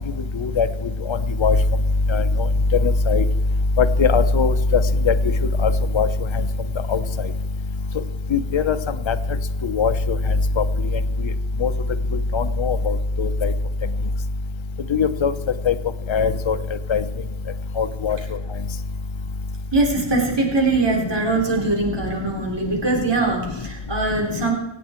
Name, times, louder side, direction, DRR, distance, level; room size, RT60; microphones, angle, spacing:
voice 1, 4.0-4.5 5.1-5.2 5.6-6.1 6.9-7.0 8.3-8.8 9.1-9.2 9.7-9.9 11.6-11.7 12.3-12.9 13.2-13.5 14.9-15.3 15.7-15.8 16.1-16.6 16.9-17.0 17.8-18.2, left 5 dB, 80° left, 9 dB, 1.0 m, -19 dB
voice 2, 19.7-24.5, right 3 dB, 65° right, 0 dB, 3.9 m, -22 dB
25.5 x 8.8 x 4.5 m, 0.90 s
wide cardioid pair, 80°, 46 cm